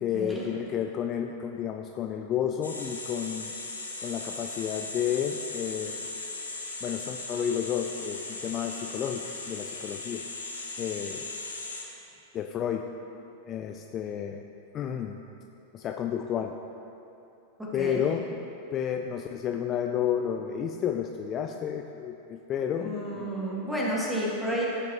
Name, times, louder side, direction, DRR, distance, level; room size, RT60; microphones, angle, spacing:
voice 1, 0.0-3.5 4.0-6.0 6.8-10.2 10.8-11.3 12.3-12.9 13.5-14.4 14.7-15.2 15.7-16.5 17.7-18.2 18.7-23.3, left 9 dB, 30° left, 4 dB, 0.4 m, -31 dB
sound 1, 2.6-11.8, left 3 dB, 80° left, 1.0 m, -38 dB
voice 2, 17.6-18.1 22.7-24.7, equal, 5° right, -5 dB, 1.9 m, -31 dB
15.0 x 5.9 x 3.0 m, 2.9 s
figure-of-eight pair, 90°, 0 cm